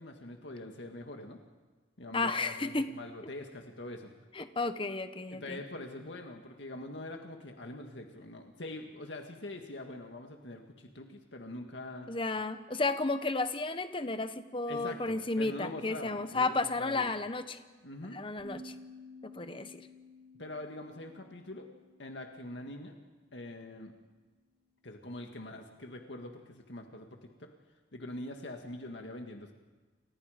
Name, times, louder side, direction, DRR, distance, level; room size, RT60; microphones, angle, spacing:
voice 1, 0.0-1.4 2.0-4.1 5.3-12.1 14.7-17.1 17.8-18.2 20.4-21.7 22.0-23.0 23.3-23.9 24.8-27.5 27.9-29.5, left 1 dB, 80° left, 3 dB, 1.9 m, -44 dB
voice 2, 2.1-2.9 4.3-5.6 12.1-17.6 18.1-18.7 19.2-19.8, left 3 dB, 30° left, 10 dB, 1.1 m, -33 dB
sound 1, 18.4-23.5, left 1 dB, 30° right, 4.9 m, -53 dB
29.5 x 24.5 x 5.2 m, 1.3 s
head